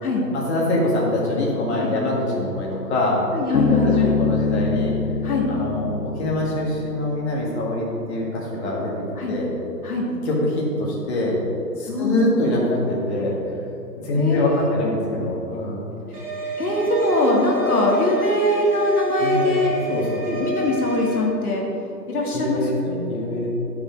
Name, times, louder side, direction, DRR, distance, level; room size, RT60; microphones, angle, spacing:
voice 1, 0.3-3.2 3.7-4.9 5.5-9.5 10.2-11.4 11.8-13.4 14.0-15.9 19.2-19.6 19.9-20.2 22.3-23.5, left 1 dB, 40° left, -4 dB, 1.8 m, -24 dB
voice 2, 3.3-4.1 5.2-5.5 9.2-9.4 9.8-10.1 11.9-12.3 14.2-14.7 16.1-16.2 16.6-19.7 20.2-21.7 22.1-23.0, left 1 dB, 60° left, -2 dB, 2.0 m, -22 dB
Bass guitar, 3.5-7.0, left 5 dB, 85° left, 1.0 m, -24 dB
sound 1, 16.1-21.2, right 1 dB, 20° right, 1.2 m, -28 dB
9.9 x 6.7 x 4.4 m, 2.9 s
figure-of-eight pair, 145°, 50 cm